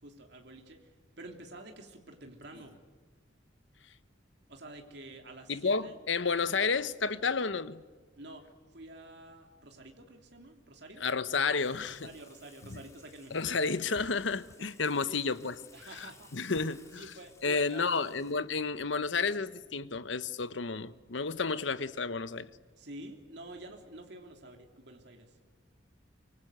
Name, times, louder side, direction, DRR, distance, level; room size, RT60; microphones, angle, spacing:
voice 1, 0.0-2.8 4.5-5.9 8.2-11.0 12.0-13.4 14.6-14.7 15.1-15.2 15.7-16.3 17.0-18.1 22.7-25.4, right 2 dB, 60° right, 3.2 m, -49 dB
voice 2, 5.5-7.8 11.0-12.1 13.3-15.5 16.0-17.0 17.4-22.5, left 4 dB, 75° left, 1.1 m, -31 dB
Water / Water tap faucet / Sink (filling or washing), 11.5-18.3, left 4 dB, 15° left, 3.1 m, -60 dB
25.0 x 24.5 x 8.1 m
head